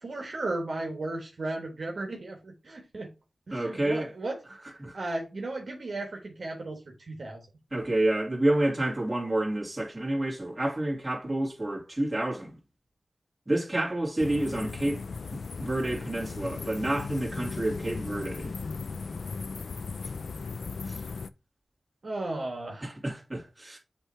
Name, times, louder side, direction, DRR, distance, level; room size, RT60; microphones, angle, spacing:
voice 1, 0.0-3.1 3.5-4.4 4.9-7.4 22.0-22.9, right 2 dB, 65° right, 1.4 m, -35 dB
voice 2, 3.5-4.1 4.8-5.0 7.7-12.6 13.5-15.0 15.3-18.5 20.9-21.0 22.8-23.8, right 1 dB, 20° right, 2.7 m, -29 dB
sound 1, 14.2-21.3, left 4 dB, 75° left, 0.4 m, -37 dB
7.9 x 3.1 x 4.4 m
wide cardioid pair, 80°, 0 cm